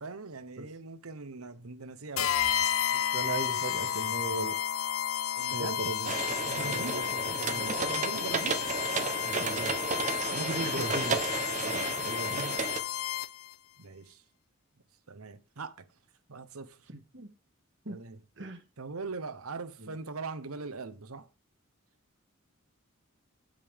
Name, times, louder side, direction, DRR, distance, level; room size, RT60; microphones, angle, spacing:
voice 1, 0.0-2.4 5.4-5.8 6.4-7.1 7.4-8.7 10.6-10.9 12.3-12.7 13.8-14.2 15.1-15.9 16.3-16.9 17.9-18.2 18.8-21.3, right 4 dB, 85° right, 1.0 m, -41 dB
sound 1, 2.2-13.5, left 10 dB, 75° left, 0.5 m, -32 dB
voice 2, 2.9-4.6 5.5-6.1 6.6-7.7 8.2-8.3 9.2-9.7 10.3-11.2 11.6-12.4 16.9-17.3 17.9-18.0 18.4-18.6 19.8-19.9, right 2 dB, 55° right, 1.9 m, -38 dB
sound 2, 6.0-12.8, right 4 dB, 35° right, 0.9 m, -33 dB
15.5 x 5.3 x 3.6 m
head